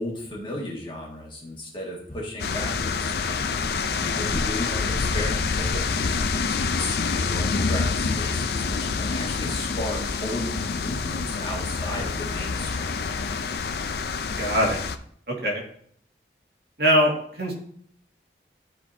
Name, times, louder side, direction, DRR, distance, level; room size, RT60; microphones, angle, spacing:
voice 1, 0.0-3.3 4.0-13.0, left 1 dB, 30° left, -3 dB, 1.9 m, -34 dB
sound 1, 2.4-15.0, left 4 dB, 60° left, 0.5 m, -27 dB
voice 2, 14.4-14.8 15.3-15.6 16.8-17.5, equal, 65° right, -1 dB, 2.0 m, -22 dB
12.5 x 4.3 x 2.7 m, 0.63 s
head